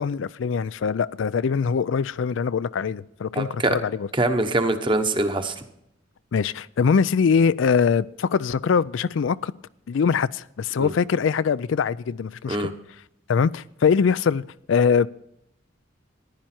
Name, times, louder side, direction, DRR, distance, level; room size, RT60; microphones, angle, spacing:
voice 1, 0.0-4.1 6.3-9.5 9.9-12.7 13.3-15.1, left 6 dB, 70° left, 0.4 m, -22 dB
voice 2, 3.3-3.8 4.1-5.5 10.8-10.9 12.5-12.7, right 2 dB, 25° right, 1.0 m, -23 dB
15.0 x 10.5 x 4.4 m
head